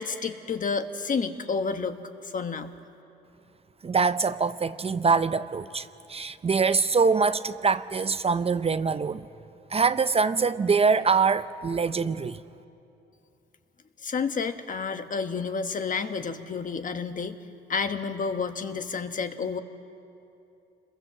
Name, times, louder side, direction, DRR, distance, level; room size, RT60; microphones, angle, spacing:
voice 1, 0.0-2.7 14.0-17.3 17.7-19.6, left 5 dB, 40° left, 1.4 m, -30 dB
voice 2, 3.8-9.2 9.7-12.4, right 5 dB, 30° right, 0.6 m, -24 dB
26.5 x 22.0 x 7.5 m
cardioid pair, 90°, 20 cm